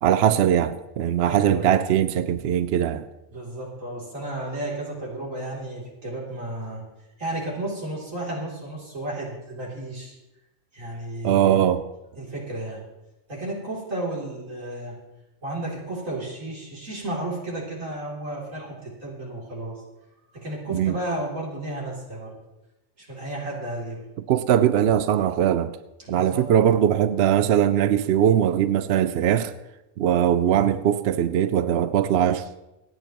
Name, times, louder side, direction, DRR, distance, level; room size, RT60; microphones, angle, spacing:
voice 1, 0.0-3.1 11.2-11.8 20.7-20.9 24.3-25.8 26.1-29.5 30.0-32.5, right 10 dB, 65° right, 0.7 m, -21 dB
voice 2, 1.2-1.8 3.3-6.8 7.2-10.2 10.7-11.6 12.2-12.8 13.3-15.0 15.4-19.8 20.3-22.3 23.0-24.0 26.0-26.8, right 1 dB, 80° right, 3.5 m, -33 dB
26.5 x 9.1 x 3.0 m
omnidirectional pair, 1.4 m